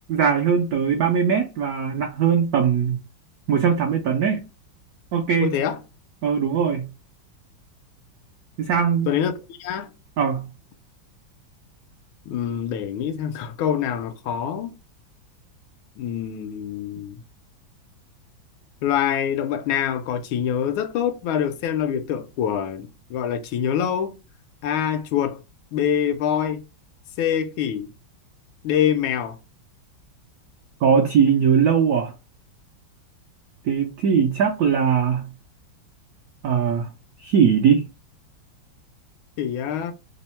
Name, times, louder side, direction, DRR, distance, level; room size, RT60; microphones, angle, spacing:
voice 1, 0.1-3.0 3.5-4.5 5.1-5.5 6.2-6.9 8.6-9.1 10.2-10.5 30.8-32.1 33.6-35.3 36.4-36.9 37.2-37.9, right 7 dB, 85° right, 0.8 m, -20 dB
voice 2, 5.4-5.8 9.1-9.9 12.3-14.7 16.0-17.2 18.8-24.2 24.6-25.4 25.7-26.6 27.2-27.9 28.6-29.4 39.4-39.9, left 9 dB, 85° left, 1.4 m, -25 dB
3.5 x 2.0 x 4.2 m
omnidirectional pair, 2.2 m